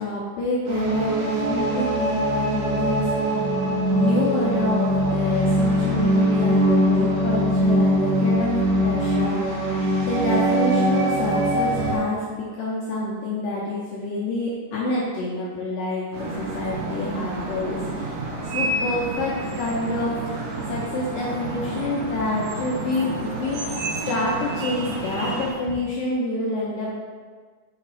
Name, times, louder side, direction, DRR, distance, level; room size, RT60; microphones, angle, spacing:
voice 1, 0.0-3.4 3.9-9.7 10.0-18.2 18.5-20.4 20.7-26.9, left 2 dB, 85° left, -7 dB, 1.9 m, -27 dB
sound 1, 0.7-12.0, right 1 dB, 85° right, 3.4 m, -22 dB
sound 2, 16.1-25.5, right 2 dB, 70° right, 2.5 m, -30 dB
7.2 x 3.9 x 4.2 m, 1.5 s
omnidirectional pair, 5.2 m